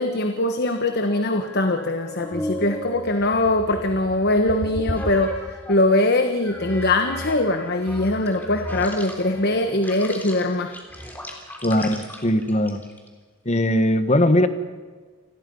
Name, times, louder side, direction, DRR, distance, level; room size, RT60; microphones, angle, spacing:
voice 1, 0.0-10.8, left 2 dB, 50° left, 6 dB, 1.4 m, -22 dB
sound 1, 0.9-5.9 6.4-13.1, equal, 10° left, 3.6 m, -35 dB
voice 2, 11.6-12.8 13.4-14.5, left 1 dB, 35° left, 9 dB, 1.6 m, -20 dB
29.0 x 20.5 x 5.6 m, 1.4 s
head